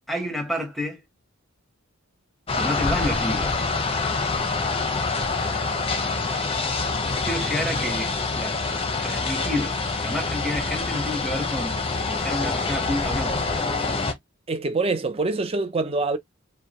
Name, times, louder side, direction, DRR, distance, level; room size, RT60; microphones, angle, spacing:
voice 1, 0.1-1.0 2.5-3.6 7.2-8.6 9.0-13.4, left 1 dB, ahead, 1.0 m, -30 dB
sound 1, 2.5-14.1, left 3 dB, 25° left, 0.7 m, -26 dB
voice 2, 14.5-16.2, right 3 dB, 25° right, 0.5 m, -25 dB
4.8 x 2.2 x 2.8 m
head